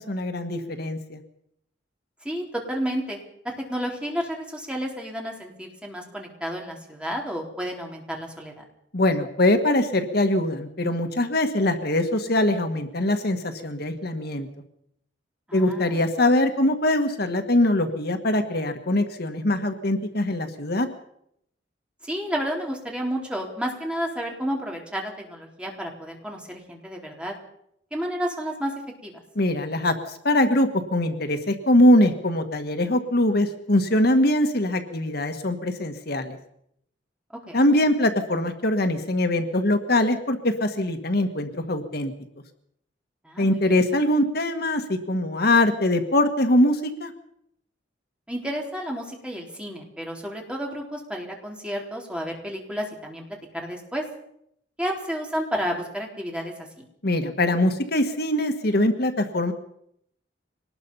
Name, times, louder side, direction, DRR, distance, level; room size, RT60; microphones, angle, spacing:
voice 1, 0.1-1.2 8.9-14.5 15.5-20.9 29.4-36.4 37.5-42.1 43.4-47.1 57.0-59.5, left 1 dB, 60° left, 6 dB, 1.7 m, -22 dB
voice 2, 2.2-3.2 3.4-8.6 15.5-16.0 22.0-27.3 27.9-28.7 29.0-29.2 37.5-37.6 43.2-43.8 48.3-53.2 53.5-54.0 54.8-56.8, equal, 5° right, 0 dB, 4.1 m, -31 dB
23.5 x 19.5 x 5.6 m, 0.75 s
head